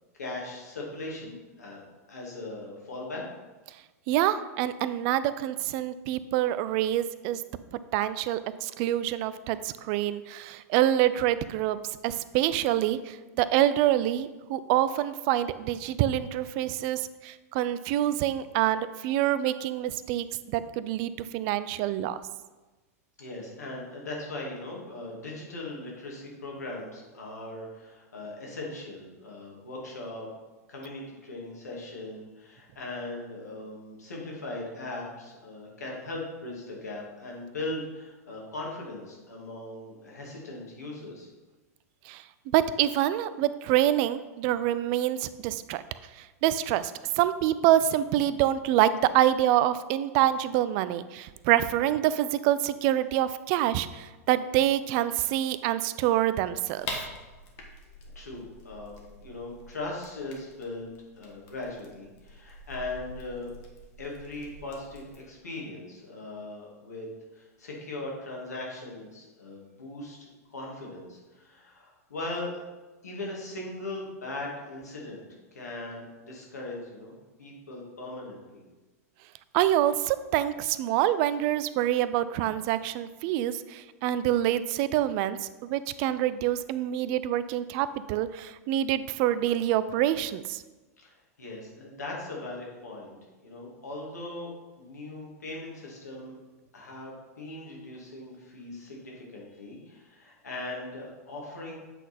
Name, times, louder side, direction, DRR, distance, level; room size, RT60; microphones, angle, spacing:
voice 1, 0.2-1.8 2.1-3.2 23.2-30.3 30.7-41.3 58.2-60.9 61.2-63.5 64.0-67.1 67.3-72.6 73.0-75.2 75.5-77.1 77.4-78.6 91.0-91.1 91.4-93.2 93.4-96.4 96.7-101.7, left 2 dB, 85° left, -2 dB, 2.0 m, -39 dB
voice 2, 4.1-7.4 7.7-22.2 42.1-45.8 46.1-57.1 79.5-90.6, right 12 dB, 50° right, 14 dB, 0.4 m, -26 dB
sound 1, 56.8-65.2, left 2 dB, 50° left, 1.5 m, -44 dB
8.1 x 4.0 x 4.2 m, 1.2 s
hypercardioid pair, 100°, 9 cm